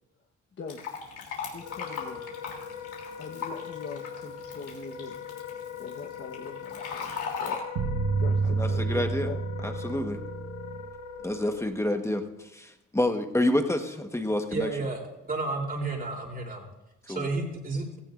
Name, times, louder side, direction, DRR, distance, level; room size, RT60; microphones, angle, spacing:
Fill (with liquid), 0.7-7.6, left 6 dB, 85° left, 3.1 m, -39 dB
Wind instrument woodwind instrument, 1.5-11.6, left 7 dB, 55° left, 3.1 m, -41 dB
voice 1, 1.5-2.3 3.2-5.2 5.8-7.6 8.1-9.4, left 4 dB, 40° left, 2 dB, 1.3 m, -42 dB
sound 1, 7.8-11.9, right 4 dB, 80° right, 1.2 m, -29 dB
voice 2, 8.6-9.3 9.6-10.2 11.2-14.7 17.1-17.3, left 1 dB, 10° left, 5 dB, 1.3 m, -28 dB
voice 3, 14.5-15.0 15.3-16.7 17.1-17.9, right 3 dB, 30° right, 0 dB, 3.4 m, -31 dB
16.5 x 15.5 x 2.6 m, 0.96 s
cardioid pair, 90°, 30 cm